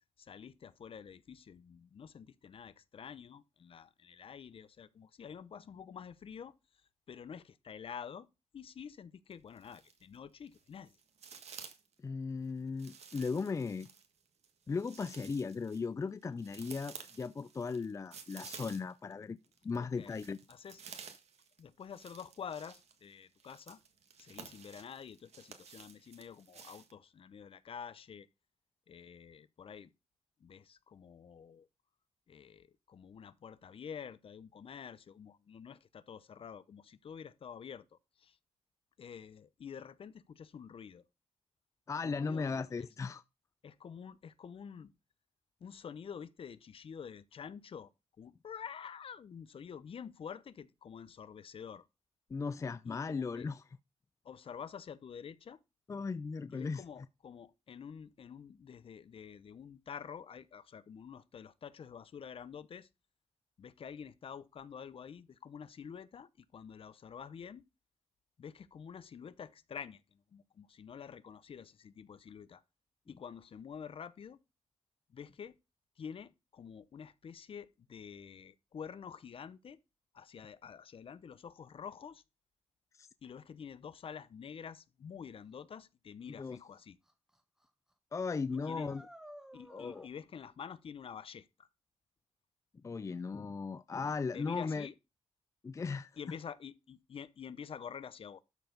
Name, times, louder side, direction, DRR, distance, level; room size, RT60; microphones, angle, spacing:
voice 1, 0.2-6.5 7.1-8.3 8.5-11.0 19.8-20.2 20.5-20.8 21.6-23.8 24.2-28.3 28.9-29.9 30.4-31.7 32.3-37.9 38.2-38.4 39.0-41.1 42.0-42.9 43.6-44.9 45.6-47.9 48.2-51.9 52.8-53.5 54.2-55.6 56.5-62.9 63.6-67.6 68.4-72.6 73.1-74.4 75.1-75.6 76.0-79.8 80.1-82.2 83.2-87.0 88.5-88.9 89.5-91.7 94.3-94.9 96.2-98.4, left 7 dB, 55° left, 0.7 m, -48 dB
sound 1, 9.3-10.2 10.5-11.9 12.8-19.1 19.4-26.9, right 6 dB, 75° right, 1.7 m, -53 dB
voice 2, 12.0-13.9 14.7-19.4 19.6-20.4 41.9-43.2 52.3-53.6 55.9-56.8 82.9-83.1 86.4-86.6 88.1-89.0 89.7-90.1 92.8-94.9 95.6-96.2, left 4 dB, 30° left, 0.4 m, -37 dB
sound 2, 86.5-86.6 87.1-87.4 87.6-87.7 88.5-90.1, equal, 5° right, 1.4 m, -53 dB
12.5 x 4.6 x 5.3 m
cardioid pair, 110°, 11 cm